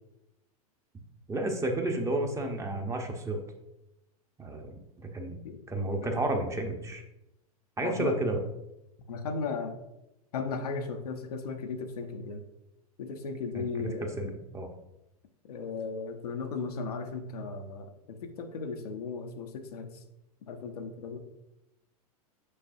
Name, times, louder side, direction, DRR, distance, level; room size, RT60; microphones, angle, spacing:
voice 1, 1.3-3.4 4.4-5.4 5.7-7.0 7.8-8.4 13.5-13.9 14.2-14.7, right 1 dB, 15° right, 4 dB, 0.8 m, -31 dB
voice 2, 7.8-8.2 9.1-9.8 10.3-12.4 13.0-14.4 15.5-20.0 20.4-21.2, left 4 dB, 80° left, 5 dB, 0.8 m, -36 dB
6.6 x 5.4 x 2.6 m, 0.89 s
hypercardioid pair, 100°, 19 cm